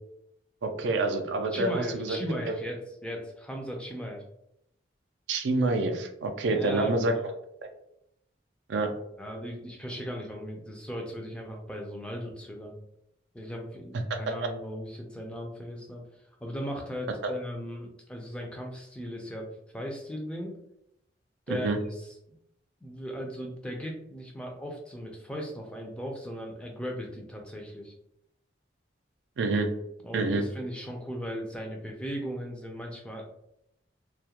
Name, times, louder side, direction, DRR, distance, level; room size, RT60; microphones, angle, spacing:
voice 1, 0.6-2.2 2.5-2.6 5.3-7.3 7.6-7.7 8.7-8.9 14.1-14.2 21.5-21.8 29.4-29.7 30.1-30.4, right 2 dB, 75° right, 6 dB, 0.4 m, -27 dB
voice 2, 1.5-4.2 6.5-7.2 9.2-12.7 13.3-16.0 16.4-19.5 19.7-20.6 21.5-22.1 22.8-27.9 30.0-33.3, equal, 5° left, 1 dB, 0.3 m, -37 dB
2.3 x 2.1 x 2.8 m, 0.78 s
head